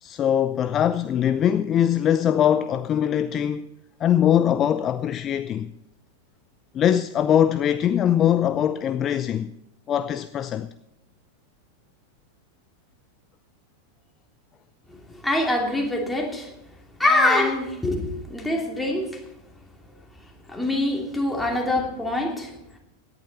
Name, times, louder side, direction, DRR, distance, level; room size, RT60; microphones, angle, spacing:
voice 1, 0.0-3.7 4.0-5.7 6.7-9.5 9.9-10.7, left 10 dB, 30° left, 0.4 m, -22 dB
voice 2, 14.9-16.5 17.0-19.2 20.5-22.5, left 2 dB, 5° left, 2.9 m, -24 dB
17.5 x 11.0 x 4.2 m
figure-of-eight pair, 90°, 0 cm